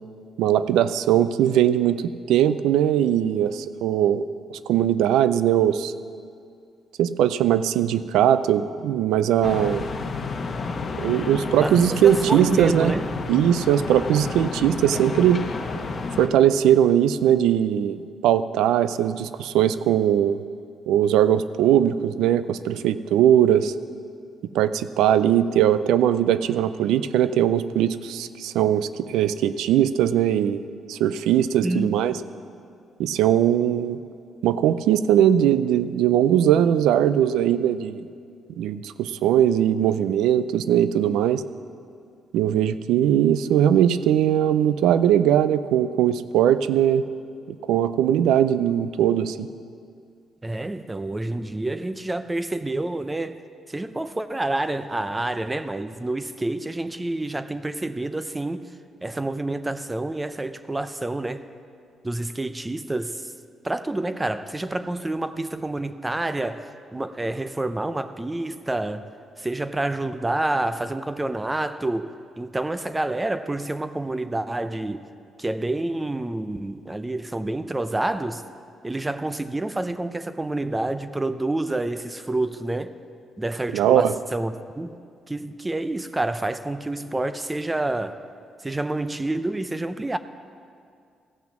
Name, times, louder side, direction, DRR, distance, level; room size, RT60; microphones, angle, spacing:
voice 1, 0.4-4.2 4.7-5.9 7.0-9.8 11.0-12.9 13.3-15.4 16.2-20.4 20.9-23.7 24.5-30.6 30.9-32.2 33.0-34.0 34.4-38.1 38.6-41.4 42.3-47.0 47.7-49.5 83.7-84.1, right 10 dB, 90° right, 0.4 m, -20 dB
sound 1, 9.4-16.3, left 4 dB, 40° left, 1.0 m, -31 dB
voice 2, 11.6-13.1 31.6-32.0 50.4-53.4 53.7-58.6 59.0-61.4 62.0-63.3 63.6-69.1 69.4-75.0 75.4-78.4 78.8-82.9 83.4-84.9 85.3-88.2 88.6-90.2, right 2 dB, 15° right, 0.5 m, -28 dB
15.5 x 6.0 x 7.1 m
cardioid pair, 90°, 0 cm